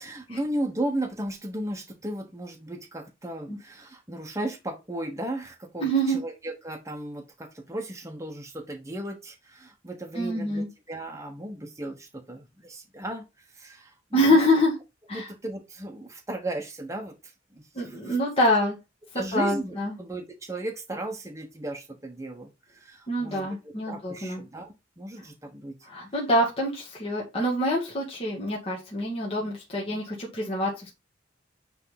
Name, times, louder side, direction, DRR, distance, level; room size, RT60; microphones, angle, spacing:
voice 1, 0.0-14.4 15.1-18.2 19.1-25.8, right 1 dB, 15° right, 1.2 m, -36 dB
voice 2, 5.8-6.2 10.2-10.7 14.1-14.7 15.1-15.3 17.8-18.8 19.3-19.9 23.1-24.4 25.9-30.9, equal, 30° left, 2.0 m, -25 dB
9.6 x 3.6 x 4.0 m
head